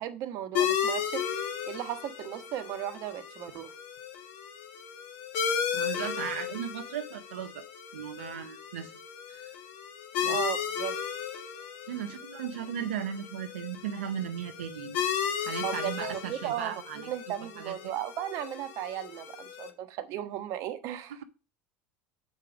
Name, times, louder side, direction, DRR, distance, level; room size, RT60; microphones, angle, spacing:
voice 1, 0.0-3.7 10.3-11.0 15.6-21.2, right 11 dB, 60° right, 9 dB, 1.1 m, -36 dB
sound 1, 0.5-19.7, left 8 dB, 70° left, 1.5 m, -35 dB
voice 2, 5.7-7.6 7.9-8.9 9.3-9.5 10.2-10.4 11.9-15.0 15.4-17.1 17.6-17.8, right 9 dB, 85° right, 7 dB, 0.6 m, -36 dB
7.5 x 5.0 x 5.0 m, 0.33 s
hypercardioid pair, 85°, 6 cm